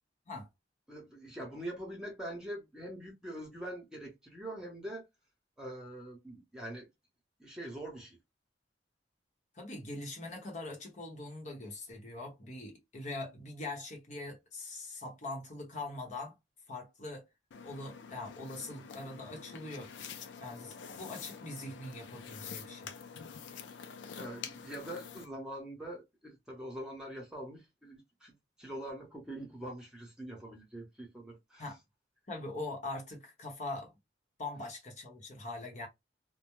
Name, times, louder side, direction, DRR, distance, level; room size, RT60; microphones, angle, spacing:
voice 1, 0.9-5.1 5.6-6.9 7.4-8.2 24.1-31.6, right 1 dB, 5° right, 0.8 m, -44 dB
voice 2, 9.5-16.3 16.7-17.2 17.6-19.9 20.4-22.9 31.6-31.8 32.3-33.9 34.4-35.9, left 2 dB, 40° left, 0.8 m, -42 dB
sound 1, 17.5-25.3, left 6 dB, 90° left, 0.4 m, -47 dB
2.2 x 2.0 x 2.9 m
head